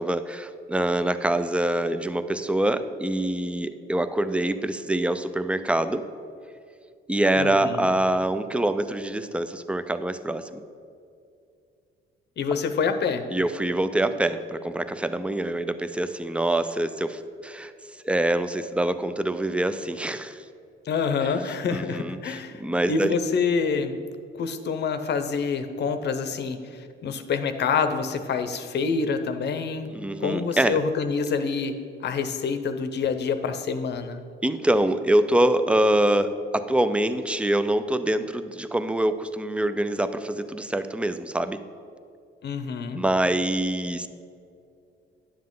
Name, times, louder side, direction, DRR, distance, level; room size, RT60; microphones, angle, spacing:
voice 1, 0.0-6.0 7.1-10.6 13.3-17.7 18.0-20.4 21.7-23.1 29.9-30.8 34.4-41.6 42.9-44.1, right 1 dB, 5° right, 11 dB, 0.4 m, -25 dB
voice 2, 7.4-8.0 12.4-13.3 20.9-22.6 22.9-24.0 24.4-29.9 30.2-31.8 32.0-34.2 42.4-43.0, left 5 dB, 60° left, 9 dB, 0.7 m, -27 dB
10.0 x 7.4 x 3.8 m, 2.4 s
cardioid pair, 90°, 20 cm